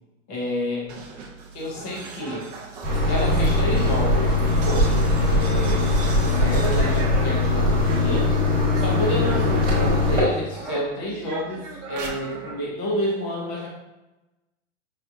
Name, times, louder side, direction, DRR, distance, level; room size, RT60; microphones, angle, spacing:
voice 1, 0.3-0.9 1.5-2.4 3.1-8.3 8.7-13.7, equal, 15° left, -4 dB, 0.4 m, -29 dB
sound 1, 0.8-10.2 10.5-12.6, right 4 dB, 35° right, 0.5 m, -38 dB
sound 2, 2.8-10.2, left 2 dB, 15° right, 1.3 m, -21 dB
5.7 x 2.4 x 2.5 m, 1.0 s
supercardioid pair, 165°, 38 cm